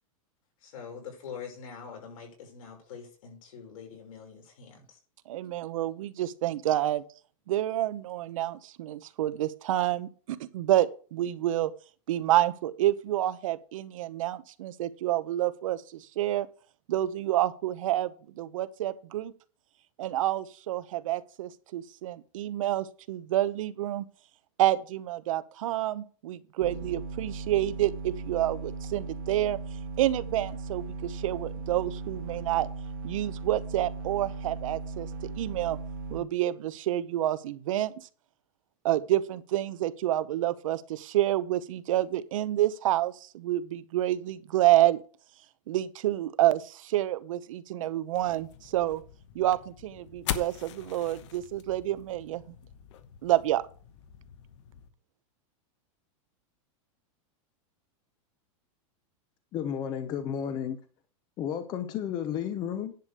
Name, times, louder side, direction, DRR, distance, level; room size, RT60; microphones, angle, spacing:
voice 1, 0.6-5.0, left 6 dB, 80° left, 5.8 m, -44 dB
voice 2, 5.3-7.0 7.5-11.7 12.1-16.5 16.9-19.3 20.0-24.0 24.6-29.6 30.0-32.7 33.0-35.1 35.4-35.8 36.1-37.9 38.8-45.0 45.7-49.0 49.3-52.4 53.2-53.6, right 14 dB, 70° right, 0.8 m, -28 dB
sound 1, 26.6-36.2, right 4 dB, 85° right, 2.2 m, -38 dB
sound 2, 48.1-54.9, left 11 dB, 60° left, 1.0 m, -42 dB
voice 3, 59.5-60.8 61.4-63.0, left 9 dB, 20° left, 0.7 m, -32 dB
10.5 x 4.9 x 6.6 m
supercardioid pair, 170°, 18 cm